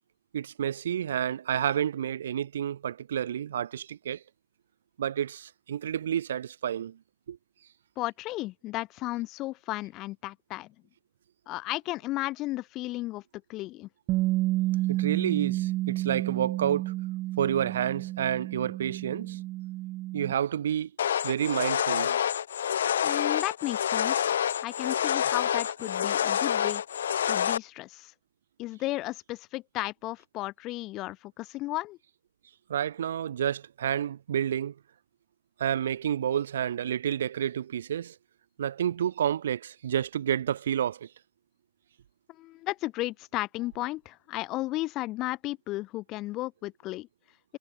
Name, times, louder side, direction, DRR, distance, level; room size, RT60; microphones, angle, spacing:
voice 1, 0.3-4.2 5.0-7.0 7.3-7.4 14.9-16.9 17.4-19.4 20.1-20.9 21.2-22.2 32.7-34.7 35.6-38.1 38.6-41.1, right 9 dB, 70° right, 6.6 m, -29 dB
voice 2, 8.0-10.7 11.5-13.2 13.5-13.9 23.0-24.3 24.6-26.8 27.3-28.1 28.6-32.0 42.4-47.1, left 18 dB, 30° left, 2.0 m, -34 dB
Bass guitar, 14.1-20.3, right 17 dB, 30° right, 0.9 m, -30 dB
sound 1, 21.0-27.6, left 9 dB, 75° left, 0.9 m, -27 dB
hypercardioid pair, 150°, 0 cm